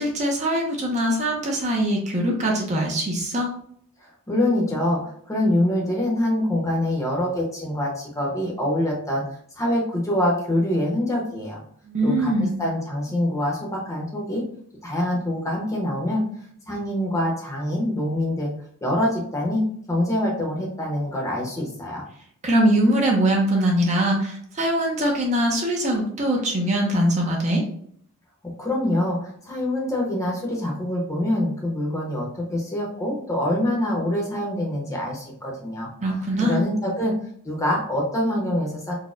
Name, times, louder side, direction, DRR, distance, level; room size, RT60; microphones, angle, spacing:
voice 1, 0.0-3.5 11.9-12.5 22.4-27.6 36.0-36.6, right 1 dB, 35° right, 0 dB, 0.5 m, -22 dB
voice 2, 4.3-9.2 9.6-11.6 12.0-14.4 14.8-16.2 16.7-18.5 18.8-22.0 28.4-35.9 36.4-37.1 37.4-38.9, left 1 dB, 15° left, -2 dB, 0.7 m, -25 dB
4.0 x 2.1 x 2.4 m, 0.63 s
head